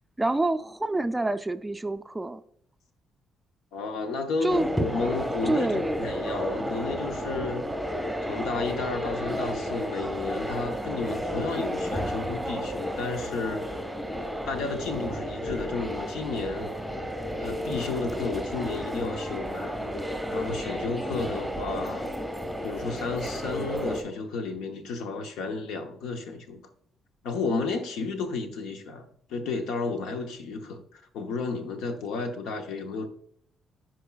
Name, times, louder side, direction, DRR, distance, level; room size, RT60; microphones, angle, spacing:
voice 1, 0.2-2.4 4.4-4.7 5.5-6.2, right 2 dB, 10° right, 0.4 m, -27 dB
voice 2, 3.7-7.7 8.3-13.6 14.5-16.7 17.4-19.8 20.3-22.1 22.6-26.6 27.2-33.1, left 4 dB, 90° left, 0.9 m, -32 dB
sound 1, 4.5-24.0, equal, 5° left, 1.1 m, -32 dB
10.5 x 4.5 x 2.3 m
cardioid pair, 90°, 0 cm